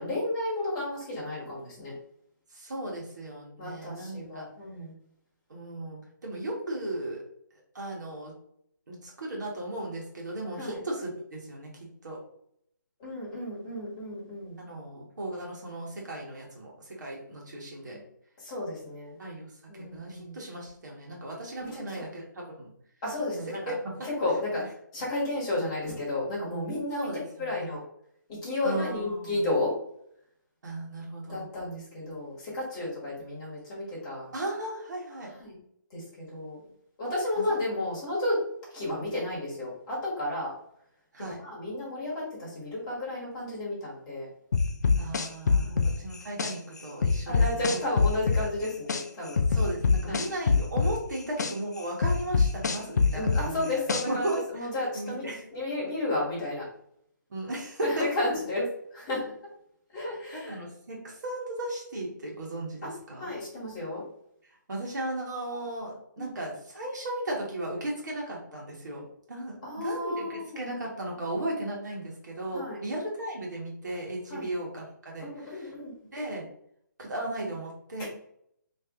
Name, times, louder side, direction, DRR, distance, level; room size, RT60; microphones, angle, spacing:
voice 1, 0.0-1.9 3.6-4.9 10.6-10.8 13.0-14.6 17.9-18.0 18.4-19.2 19.7-20.3 21.6-22.1 23.0-23.7 24.0-24.6 24.9-27.1 27.4-27.8 28.4-29.7 31.3-34.3 35.4-35.6 35.9-36.6 37.0-38.4 38.7-40.5 41.2-44.3 45.6-45.9 47.3-49.4 50.1-50.3 53.1-55.2 55.5-56.6 57.8-58.7 58.9-59.3 59.9-60.6 62.8-62.9 63.2-64.0 66.2-66.3 69.6-70.6 72.5-72.8 74.3-74.5 75.2-75.9 78.0-78.1, left 2 dB, 15° left, -6 dB, 1.4 m, -32 dB
voice 2, 2.5-4.5 5.5-7.2 7.7-8.3 8.9-12.2 14.6-18.0 19.2-22.7 23.5-24.1 24.5-24.7 27.0-27.8 28.6-29.5 30.6-31.5 34.3-35.3 37.3-37.4 41.1-41.4 45.0-47.8 49.5-54.7 54.9-55.4 57.3-58.1 60.3-63.3 64.7-75.7 76.1-76.5 77.0-78.0, right 1 dB, 60° right, -2 dB, 1.5 m, -36 dB
sound 1, 44.5-46.5 47.0-49.0 49.4-51.5 52.0-54.3, left 4 dB, 60° left, 0.5 m, -23 dB
3.0 x 3.0 x 3.7 m, 0.72 s
hypercardioid pair, 170°, 11 cm